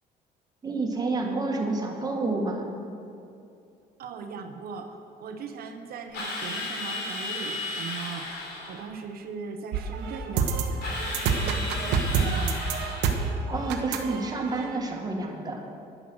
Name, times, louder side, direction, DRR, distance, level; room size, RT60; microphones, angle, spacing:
voice 1, 0.6-2.7 13.5-15.6, right 3 dB, 25° right, 0 dB, 1.9 m, -29 dB
voice 2, 4.0-8.3 8.7-12.6, right 5 dB, 65° right, 6 dB, 1.0 m, -39 dB
Drill, 6.1-8.8 10.8-13.3, left 2 dB, 80° left, 3.4 m, -34 dB
sound 1, 9.7-14.8, right 5 dB, 85° right, 1.1 m, -28 dB
10.5 x 10.0 x 6.2 m, 2.6 s
cardioid pair, 110°, 17 cm